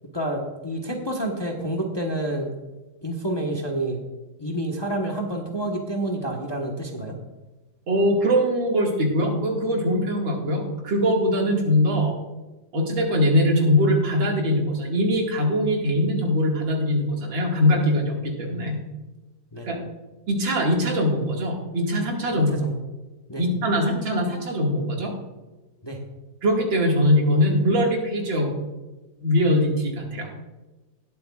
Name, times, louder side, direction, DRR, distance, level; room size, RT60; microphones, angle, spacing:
voice 1, 0.1-2.5 3.0-4.0 4.4-7.1 19.5-19.7 22.3-22.7 23.3-23.4 25.8-26.0, right 1 dB, 15° left, 0 dB, 1.0 m, -28 dB
voice 2, 7.9-12.1 12.7-18.8 19.6-19.8 20.3-22.5 23.4-25.1 26.4-28.5 29.2-30.3, equal, 85° right, -1 dB, 2.8 m, -22 dB
19.5 x 8.1 x 2.4 m, 1.1 s
omnidirectional pair, 2.0 m